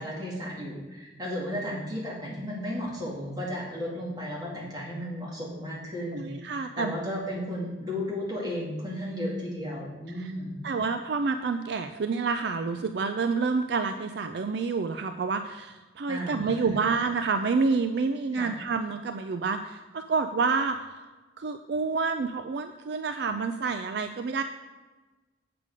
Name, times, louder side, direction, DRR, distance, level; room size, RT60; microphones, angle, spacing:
voice 1, 0.0-10.6 16.1-16.9 18.3-18.5, equal, 20° right, -5 dB, 2.5 m, -34 dB
voice 2, 6.1-6.9 10.2-10.3 10.6-21.1 21.4-24.4, right 4 dB, 60° right, 8 dB, 0.4 m, -28 dB
8.2 x 6.8 x 4.9 m, 1.2 s
head